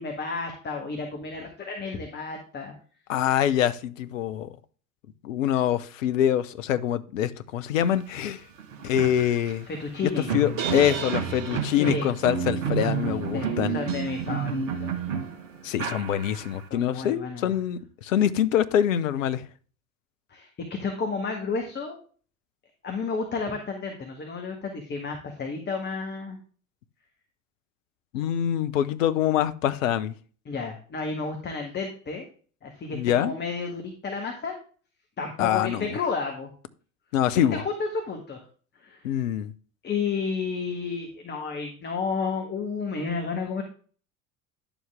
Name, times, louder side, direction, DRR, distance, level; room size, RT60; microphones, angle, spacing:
voice 1, 0.0-2.7 9.7-10.3 11.7-12.1 13.3-15.0 16.7-17.5 20.3-22.0 22.8-26.4 30.4-32.2 32.6-34.6 35.2-36.5 37.5-38.4 38.8-39.0 39.8-43.6, left 4 dB, 25° left, 1.7 m, -31 dB
voice 2, 3.1-4.5 5.2-8.4 8.8-9.7 10.0-13.8 15.6-19.5 28.1-30.1 32.9-33.3 35.4-36.0 37.1-37.6 39.0-39.5, left 10 dB, 65° left, 0.8 m, -25 dB
sound 1, 8.2-8.3 8.6-16.6, right 6 dB, 60° right, 1.6 m, -30 dB
10.5 x 7.1 x 3.6 m
figure-of-eight pair, 70°, 43 cm